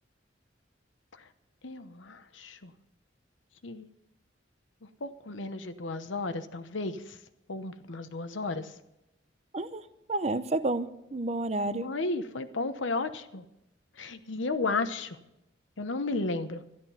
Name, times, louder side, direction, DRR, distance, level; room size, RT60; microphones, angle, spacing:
voice 1, 1.6-2.7 3.6-3.9 5.0-7.0 7.5-8.7 11.7-13.4 14.0-15.2 15.8-16.6, left 3 dB, 80° left, 10 dB, 0.9 m, -33 dB
voice 2, 10.1-11.9, right 2 dB, 35° right, 12 dB, 0.6 m, -30 dB
12.5 x 11.0 x 5.6 m, 0.89 s
head